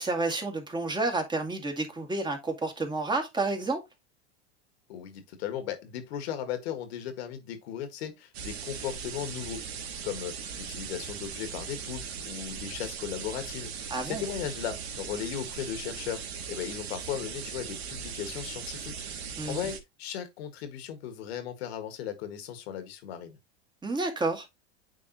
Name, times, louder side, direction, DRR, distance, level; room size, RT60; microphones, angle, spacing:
voice 1, 0.0-3.8 13.9-14.2 19.4-19.7 23.8-24.5, right 3 dB, 15° right, 1.9 m, -30 dB
voice 2, 4.9-13.7 14.1-16.2 16.5-19.0 19.5-23.4, left 9 dB, 75° left, 1.8 m, -37 dB
sound 1, 8.3-19.8, right 6 dB, 75° right, 1.5 m, -39 dB
9.4 x 3.7 x 2.9 m
hypercardioid pair, 100°, 32 cm